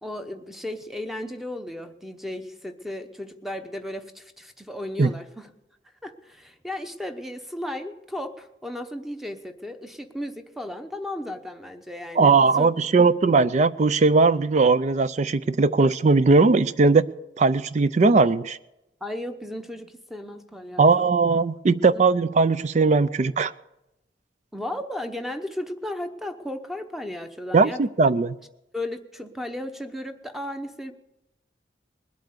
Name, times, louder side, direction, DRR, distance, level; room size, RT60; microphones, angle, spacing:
voice 1, 0.0-5.5 6.0-12.7 13.0-13.1 19.0-21.1 21.9-22.1 24.5-27.9 28.7-30.9, left 1 dB, ahead, 7 dB, 0.9 m, -35 dB
voice 2, 12.2-17.1 17.4-18.6 20.8-23.5 27.5-28.3, right 4 dB, 40° right, 16 dB, 0.4 m, -19 dB
20.5 x 8.3 x 6.6 m, 0.92 s
head